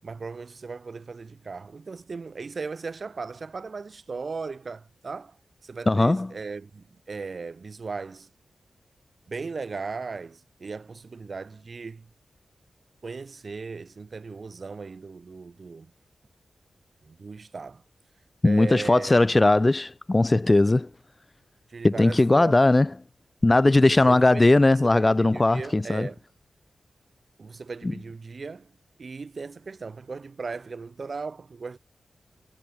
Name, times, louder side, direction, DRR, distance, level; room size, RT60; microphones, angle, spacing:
voice 1, 0.0-5.4 5.6-8.3 9.3-12.1 13.0-15.9 17.0-17.8 18.4-19.3 21.7-22.7 24.0-26.2 27.4-28.7 29.0-31.8, right 4 dB, 40° right, 7.9 m, -37 dB
voice 2, 5.9-6.3 18.4-20.9 21.8-22.9 23.4-26.1, left 2 dB, 20° left, 1.8 m, -19 dB
wide cardioid pair, 155°, 0 cm